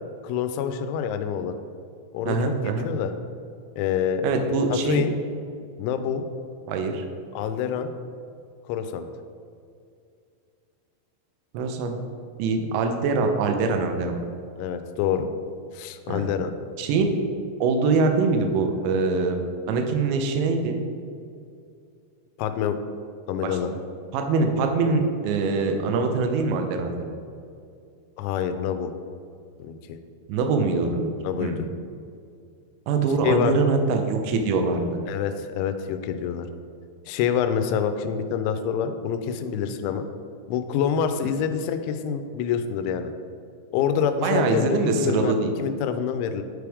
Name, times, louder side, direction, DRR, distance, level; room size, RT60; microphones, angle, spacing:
voice 1, 0.2-1.5 2.1-2.4 2.8-3.1 3.8-4.2 4.7-5.1 5.8-6.3 7.3-7.9 8.7-9.1 14.6-15.3 15.7-16.5 22.4-22.8 23.3-23.7 28.2-28.9 29.6-29.8 31.2-31.6 33.2-33.5 35.1-36.5 37.1-40.0 40.5-43.1 43.7-45.3 45.6-46.4, left 8 dB, 85° left, 9 dB, 2.9 m, -26 dB
voice 2, 2.3-2.9 4.2-5.1 6.7-7.0 11.5-12.0 12.4-14.2 16.1-16.3 16.8-17.2 17.6-20.8 23.4-23.8 24.1-27.1 30.3-31.1 31.4-31.6 32.9-35.0 44.2-45.5, right 4 dB, 80° right, 5 dB, 2.9 m, -23 dB
10.5 x 4.8 x 3.4 m, 2.4 s
omnidirectional pair, 5.3 m